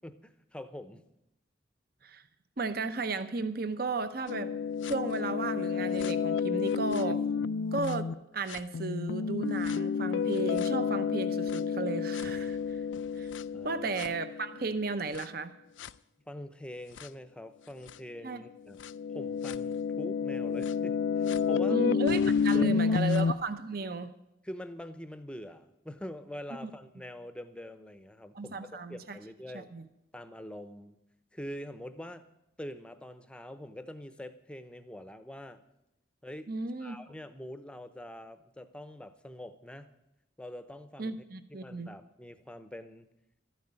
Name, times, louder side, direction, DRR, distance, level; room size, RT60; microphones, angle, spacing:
voice 1, 0.0-1.0 13.5-13.9 16.3-18.8 19.1-21.8 22.5-23.1 24.4-29.7 30.1-31.0 31.3-32.2 32.6-35.6 36.2-36.5 36.8-39.9 40.4-41.2 41.5-43.1, left 1 dB, 5° left, 10 dB, 0.7 m, -44 dB
voice 2, 2.6-4.5 4.8-7.2 7.7-12.8 13.2-13.3 13.6-15.5 18.2-18.4 21.7-24.1 28.3-29.2 29.5-29.8 36.5-37.0 41.0-41.9, right 3 dB, 50° right, 11 dB, 0.8 m, -34 dB
sound 1, 4.3-8.1 8.5-14.6 15.1-15.2 15.8-15.9 17.0-17.1 17.9-18.0 18.8-23.3, left 6 dB, 75° left, 0.4 m, -30 dB
13.0 x 9.5 x 8.9 m, 0.85 s
head